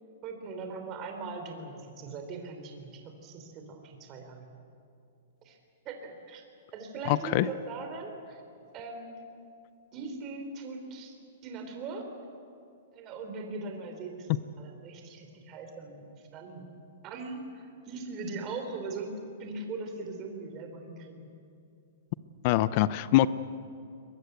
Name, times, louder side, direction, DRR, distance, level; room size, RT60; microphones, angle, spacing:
voice 1, 0.2-4.5 5.4-5.6 5.9-6.4 6.7-8.4 8.7-9.1 9.9-11.1 11.4-12.1 12.9-16.6 17.0-19.1 19.4-21.3, right 3 dB, 25° right, 4 dB, 3.4 m, -40 dB
voice 2, 7.1-7.5 22.4-23.3, left 15 dB, 40° left, 16 dB, 0.6 m, -23 dB
22.5 x 22.0 x 8.1 m, 2.6 s
hypercardioid pair, 155°, 0 cm